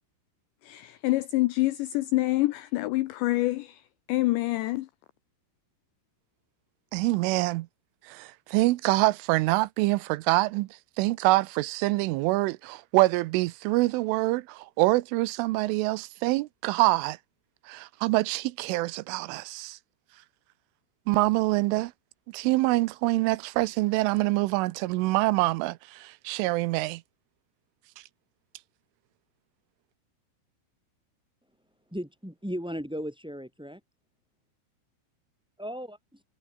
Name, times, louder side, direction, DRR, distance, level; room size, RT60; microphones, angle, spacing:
voice 1, 0.6-3.8 4.1-4.9, left 19 dB, 85° left, 2.5 m, -26 dB
voice 2, 6.9-7.7 8.1-10.7 11.0-17.2 17.7-19.8 21.1-21.9 22.3-27.0, right 20 dB, 80° right, 3.1 m, -25 dB
voice 3, 31.9-33.8 35.6-36.2, equal, ahead, 3.7 m, -36 dB
omnidirectional pair, 6.0 m